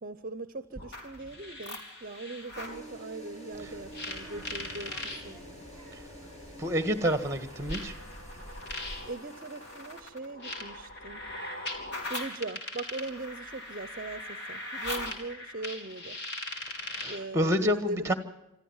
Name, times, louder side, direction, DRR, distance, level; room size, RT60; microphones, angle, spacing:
voice 1, 0.0-5.4 8.6-8.7 9.0-11.2 12.1-16.2 16.5-16.7 17.1-18.1, right 2 dB, 45° right, 12 dB, 0.7 m, -40 dB
sound 1, 0.8-2.8 3.9-5.2 6.3-6.4 7.7-17.3, left 2 dB, 55° left, 3.3 m, -40 dB
sound 2, 2.5-10.0, right 1 dB, 35° left, 7.4 m, -48 dB
Child speech kid speaking, 3.5-9.1, right 1 dB, 10° left, 1.7 m, -48 dB
voice 2, 6.6-7.9 16.8-18.1, equal, 15° right, 10 dB, 1.7 m, -28 dB
26.5 x 13.5 x 7.3 m, 0.91 s
head